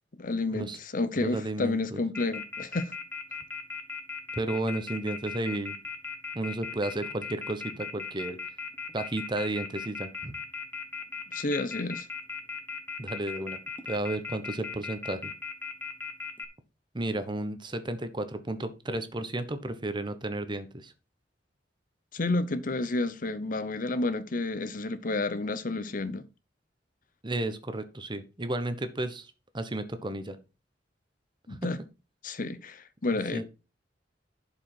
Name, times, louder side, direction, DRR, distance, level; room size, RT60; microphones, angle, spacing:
voice 1, 0.2-2.9 11.3-12.1 22.1-26.3 31.5-31.8 32.2-33.4, left 2 dB, 50° left, 0.7 m, -30 dB
voice 2, 1.2-2.0 4.4-5.8 6.3-8.4 8.9-10.4 13.0-13.6 13.9-15.3 16.9-20.9 27.2-30.4 31.5-31.6 33.3-33.4, right 2 dB, 25° right, 1.1 m, -33 dB
Telephone, 2.1-16.4, left 5 dB, 10° left, 1.1 m, -37 dB
11.5 x 5.4 x 4.5 m
head